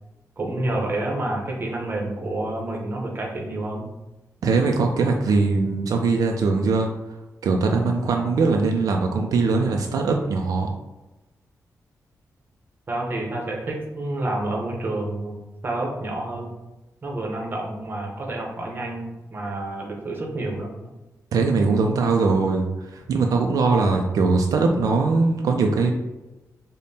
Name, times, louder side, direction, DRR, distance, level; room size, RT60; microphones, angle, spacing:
voice 1, 0.4-3.9 12.9-15.4 15.6-16.5 17.0-20.7, right 2 dB, 35° right, -1 dB, 0.7 m, -29 dB
voice 2, 4.4-6.9 7.4-10.7 21.3-25.9, right 4 dB, 80° right, 2 dB, 0.3 m, -21 dB
5.1 x 2.1 x 2.7 m, 1.0 s
wide cardioid pair, 175°, 6 cm